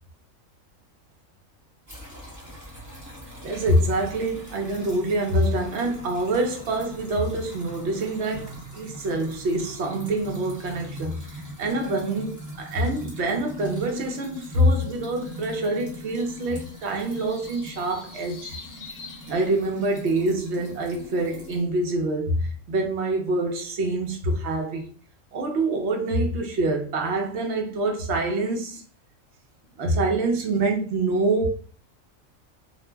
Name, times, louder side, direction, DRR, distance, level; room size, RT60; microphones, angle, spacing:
sound 1, 1.9-21.6, right 1 dB, 20° right, 0.7 m, -42 dB
voice 1, 3.4-11.2 11.6-18.5 19.3-24.9 25.3-28.8 29.8-31.5, right 2 dB, 60° right, 0.9 m, -25 dB
sound 2, 16.1-20.1, left 5 dB, 60° left, 0.8 m, -46 dB
2.5 x 2.0 x 3.2 m
omnidirectional pair, 1.4 m